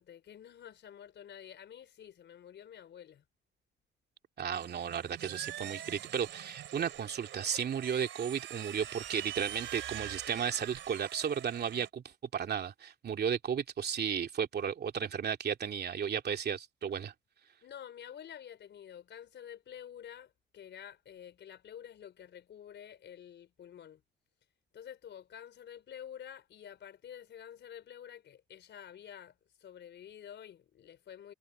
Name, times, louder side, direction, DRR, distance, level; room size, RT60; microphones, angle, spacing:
voice 1, 0.0-3.2 17.6-24.0 24.7-29.3 29.6-31.3, left 9 dB, 65° left, 4.5 m, -49 dB
voice 2, 4.4-12.0 12.3-17.1, right 7 dB, 55° right, 2.7 m, -34 dB
sound 1, 4.5-11.9, right 12 dB, 75° right, 3.9 m, -44 dB
cardioid pair, 90°, 20 cm